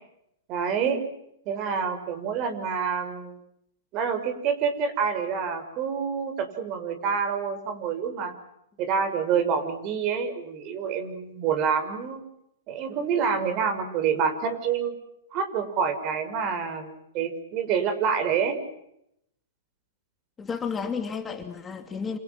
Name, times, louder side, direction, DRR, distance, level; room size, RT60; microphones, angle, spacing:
voice 1, 0.5-1.0 1.4-3.4 3.9-8.3 8.8-12.2 12.7-14.9 15.3-18.6, right 6 dB, 40° right, 9 dB, 6.2 m, -27 dB
voice 2, 20.4-22.2, left 6 dB, 15° left, 5 dB, 2.7 m, -32 dB
29.0 x 28.0 x 6.1 m, 0.78 s
hypercardioid pair, 125°, 0 cm